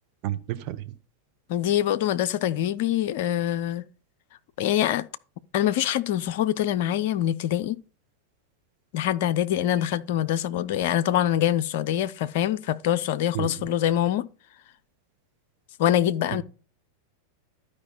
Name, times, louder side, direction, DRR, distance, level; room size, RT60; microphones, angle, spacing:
voice 1, 0.2-0.8 13.3-13.5, right 14 dB, 40° right, 1.0 m, -30 dB
voice 2, 1.5-3.9 4.6-5.0 5.5-7.8 8.9-14.3 15.8-16.4, left 11 dB, 50° left, 0.5 m, -24 dB
12.0 x 5.1 x 4.0 m
figure-of-eight pair, 90°, 0 cm